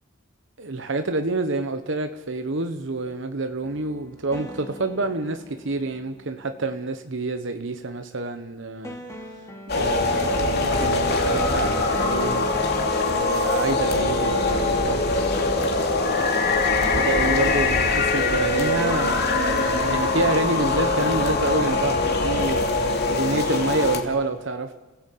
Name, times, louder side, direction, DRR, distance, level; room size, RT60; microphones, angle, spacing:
voice 1, 0.6-9.0 9.7-12.5 13.0-15.0 16.7-22.7 23.1-24.7, right 3 dB, 65° right, 8 dB, 1.1 m, -28 dB
sound 1, 3.6-6.6 8.8-19.9, equal, 15° left, 2.5 m, -39 dB
sound 2, 9.7-24.0, left 3 dB, 55° left, 2.9 m, -22 dB
30.0 x 17.0 x 8.4 m, 1.2 s
head